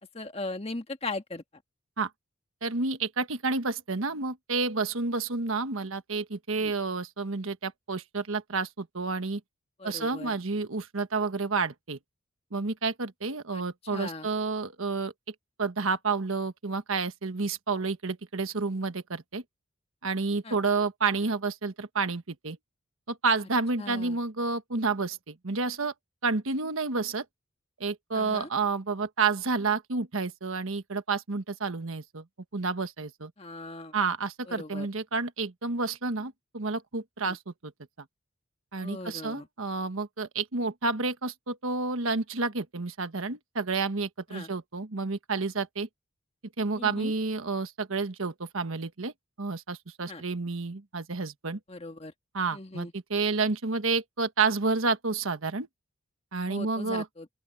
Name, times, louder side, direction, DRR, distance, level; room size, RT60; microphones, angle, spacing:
voice 1, 0.0-1.4 6.6-6.7 9.8-10.4 13.5-14.3 20.4-20.6 23.8-24.2 28.1-28.5 33.4-33.9 34.5-34.9 37.2-37.4 38.8-39.5 44.3-44.5 46.7-47.1 50.1-50.2 51.7-52.1 52.5-52.9 56.5-57.3, left 2 dB, 30° left, 1.6 m, -39 dB
voice 2, 2.6-9.4 9.8-12.0 12.5-19.4 20.0-22.6 23.1-25.9 26.2-27.2 27.8-32.2 32.5-33.3 33.9-37.7 38.7-45.9 46.6-49.1 49.4-51.6 52.3-55.7 56.3-57.0, right 4 dB, 80° right, 1.3 m, -30 dB
open air
head